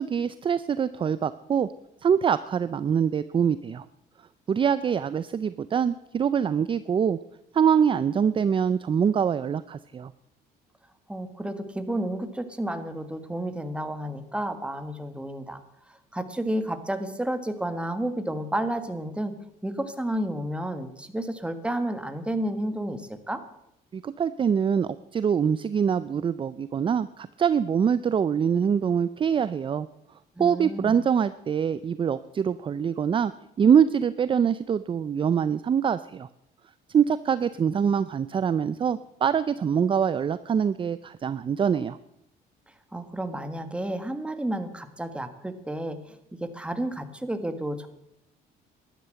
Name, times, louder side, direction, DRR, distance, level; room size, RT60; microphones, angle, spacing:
voice 1, 0.0-1.7 2.0-3.8 4.5-7.2 7.5-10.1 23.9-29.9 30.4-33.3 33.6-36.3 36.9-42.0, right 7 dB, 30° right, 15 dB, 0.5 m, -24 dB
voice 2, 11.1-15.6 15.9-19.3 19.6-23.4 30.4-31.0 42.9-47.9, right 1 dB, 5° right, 9 dB, 1.6 m, -31 dB
13.0 x 11.5 x 7.7 m, 0.80 s
cardioid pair, 110°, 17 cm